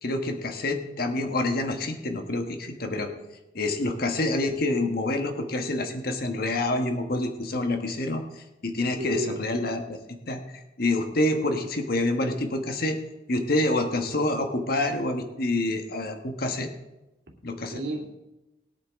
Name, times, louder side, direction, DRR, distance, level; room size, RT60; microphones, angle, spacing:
voice 1, 0.0-3.1 3.5-13.0 13.3-16.7 17.4-17.8, left 2 dB, 55° left, 5 dB, 1.4 m, -27 dB
voice 2, 9.0-9.7 17.7-18.1, right 1 dB, 65° right, 0 dB, 2.5 m, -34 dB
20.5 x 8.6 x 3.7 m, 1.0 s
head